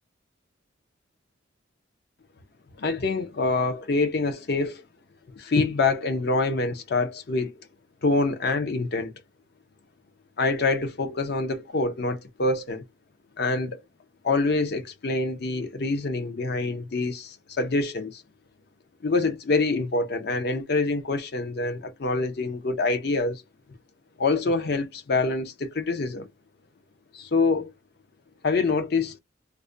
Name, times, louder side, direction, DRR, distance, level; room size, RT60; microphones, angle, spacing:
voice 1, 2.8-4.8 5.4-7.6 8.0-9.1 10.4-12.8 13.4-13.8 14.2-18.2 19.0-23.4 24.2-26.3 27.1-27.7 28.4-29.2, left 3 dB, 55° left, 0.6 m, -26 dB
2.4 x 2.1 x 2.5 m
head